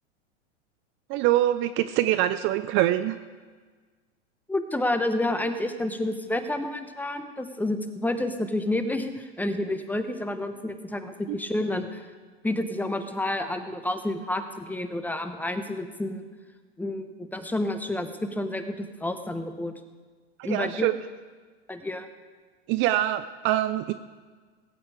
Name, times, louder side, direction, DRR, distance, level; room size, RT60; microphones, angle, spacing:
voice 1, 1.1-3.2 20.4-20.9 22.7-23.9, right 14 dB, 35° right, 12 dB, 0.5 m, -24 dB
voice 2, 4.5-12.1 12.4-16.3 16.8-19.7 20.4-20.9 21.7-22.1, left 1 dB, 5° left, 8 dB, 0.9 m, -29 dB
19.5 x 8.7 x 4.9 m, 1.4 s
hypercardioid pair, 115°, 35 cm